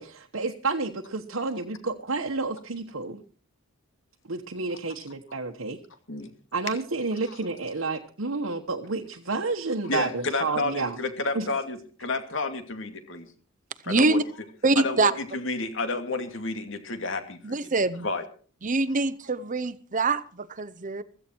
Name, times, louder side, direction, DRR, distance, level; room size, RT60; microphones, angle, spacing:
voice 1, 0.0-3.2 4.3-5.8 6.5-11.0 11.3-11.5, right 3 dB, 70° right, 2 dB, 1.3 m, -30 dB
voice 2, 9.8-13.3 13.9-14.2 14.8-17.4 18.0-18.2, left 3 dB, 65° left, 7 dB, 2.4 m, -30 dB
voice 3, 13.9-14.2 14.6-15.1 17.4-18.1 18.6-21.0, right 3 dB, 40° right, 15 dB, 0.8 m, -24 dB
16.0 x 14.5 x 4.6 m, 0.41 s
head